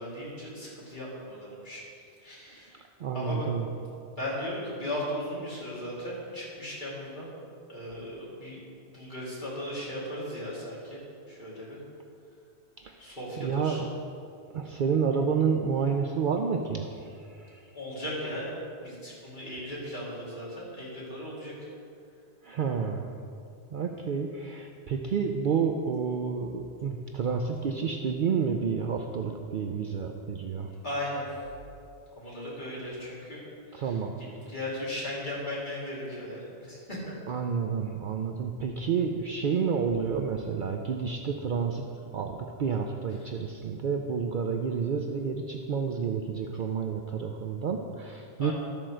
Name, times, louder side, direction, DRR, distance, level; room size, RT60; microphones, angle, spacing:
voice 1, 0.0-1.8 2.2-2.7 3.1-3.5 4.2-7.3 7.7-11.0 11.3-11.8 13.0-13.8 17.7-21.5 30.8-31.2 32.1-33.4 33.7-33.9 34.5-37.2 43.2-43.3 48.4-48.5, left 1 dB, 45° left, -7 dB, 3.0 m, -37 dB
voice 2, 3.0-3.6 12.8-13.0 13.4-13.9 14.5-16.9 17.3-17.6 22.4-23.1 23.7-30.7 33.7-34.1 37.3-41.8 42.1-48.5, right 6 dB, 55° right, 3 dB, 0.6 m, -29 dB
12.5 x 4.4 x 6.2 m, 2.5 s
omnidirectional pair, 1.2 m